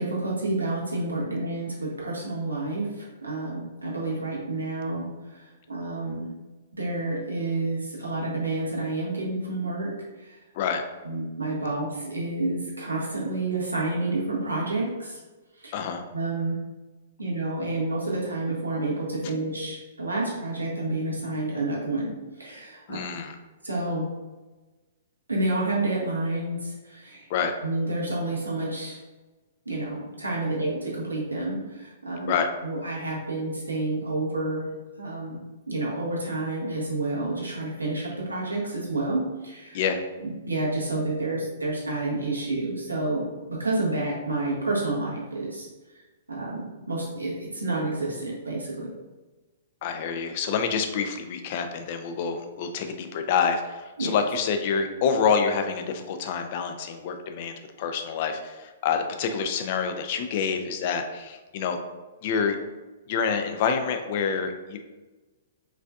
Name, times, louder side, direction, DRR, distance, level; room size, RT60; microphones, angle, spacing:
voice 1, 0.0-5.1 5.3-5.4 5.7-6.3 6.8-9.9 10.2-10.4 11.0-15.2 15.6-15.7 16.1-16.6 17.2-22.1 22.4-23.0 23.6-24.1 25.3-27.3 27.6-29.0 29.6-32.3 32.6-34.6 35.0-35.4 35.7-39.8 40.2-45.7 46.3-48.9 54.0-54.1, right 2 dB, 80° right, -4 dB, 1.3 m, -29 dB
voice 2, 15.7-16.0 22.9-23.4 27.3-27.5 32.3-32.5 39.7-40.0 49.8-61.8 62.2-62.6 63.1-64.8, left 6 dB, 45° left, 6 dB, 0.5 m, -27 dB
4.8 x 3.4 x 2.3 m, 1.2 s
figure-of-eight pair, 115°, 0 cm